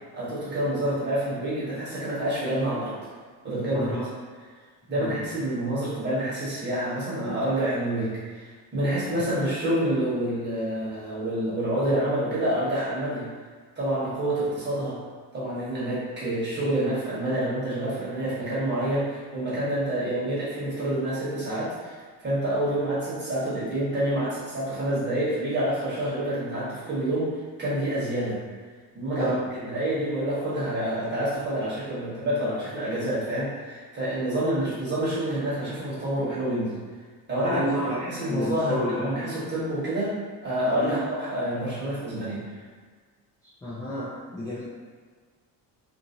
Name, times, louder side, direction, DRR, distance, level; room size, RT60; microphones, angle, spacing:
voice 1, 0.1-2.9 3.4-4.0 4.9-13.3 13.8-15.0 15.3-22.0 22.2-27.3 27.6-28.4 28.9-29.3 29.6-36.8 37.3-40.1 40.4-42.4, right 1 dB, 30° right, -10 dB, 1.3 m, -27 dB
voice 2, 37.4-38.0 38.3-39.2 40.8-41.0 43.6-44.6, equal, 10° left, -10 dB, 0.4 m, -30 dB
2.7 x 2.6 x 2.7 m, 1.5 s
cardioid pair, 140°, 38 cm